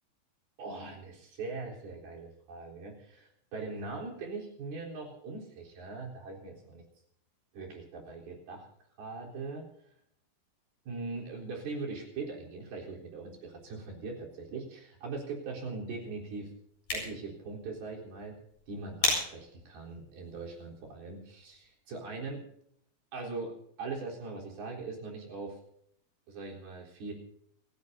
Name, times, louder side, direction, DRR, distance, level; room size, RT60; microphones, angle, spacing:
voice 1, 0.6-6.8 7.5-8.7 9.0-9.7 10.9-16.5 16.9-18.4 18.7-22.4 23.1-25.6 26.3-27.1, right 3 dB, 80° right, -1 dB, 5.8 m, -41 dB
sound 1, 16.6-21.7, left 2 dB, 50° left, 8.9 m, -37 dB
29.5 x 15.5 x 2.8 m, 0.69 s
omnidirectional pair, 4.4 m